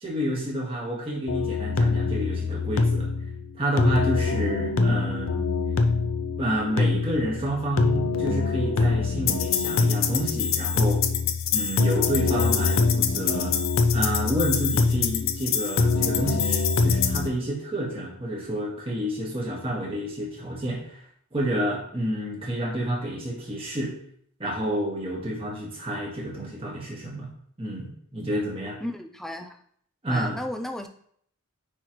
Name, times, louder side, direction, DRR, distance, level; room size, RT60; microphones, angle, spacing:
voice 1, 0.0-3.1 3.6-5.4 6.4-11.0 11.5-13.5 13.9-21.0 21.3-23.9 24.4-27.3 27.6-28.8 30.0-30.3, right 1 dB, 25° right, -4 dB, 1.6 m, -29 dB
sound 1, 1.3-17.3, left 4 dB, 65° left, 0.5 m, -24 dB
voice 2, 28.8-29.6 30.1-30.9, left 1 dB, ahead, 5 dB, 0.3 m, -34 dB
9.5 x 3.3 x 3.0 m, 0.65 s
head